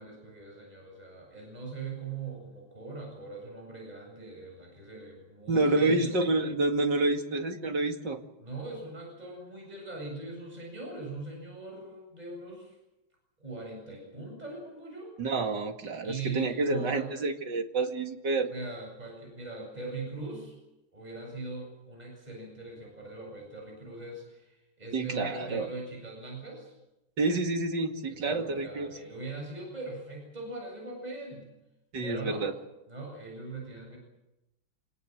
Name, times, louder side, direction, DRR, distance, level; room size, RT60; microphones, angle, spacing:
voice 1, 0.0-6.2 8.4-12.7 13.4-15.1 16.0-17.1 18.5-20.6 20.9-26.7 28.1-31.5 32.0-32.5 32.9-34.0, right 3 dB, 20° right, 0 dB, 8.0 m, -41 dB
voice 2, 5.5-8.2 15.2-18.5 24.9-25.7 27.2-28.9 31.9-32.5, right 2 dB, 55° right, 4 dB, 2.8 m, -28 dB
28.0 x 19.5 x 7.8 m, 0.93 s
omnidirectional pair, 2.3 m